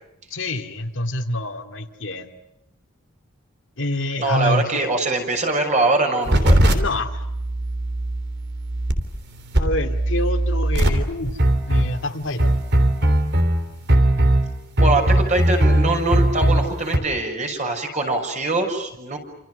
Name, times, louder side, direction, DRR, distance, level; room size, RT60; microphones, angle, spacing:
voice 1, 0.3-2.3 3.8-4.8 6.7-7.2 9.6-11.4 11.7-12.5, left 1 dB, 60° left, 5 dB, 2.3 m, -26 dB
voice 2, 4.2-6.6 14.8-19.2, right 2 dB, 35° right, 4 dB, 6.3 m, -23 dB
sound 1, 6.3-17.0, right 1 dB, 55° right, 3.4 m, -19 dB
30.0 x 28.0 x 6.5 m, 0.82 s
head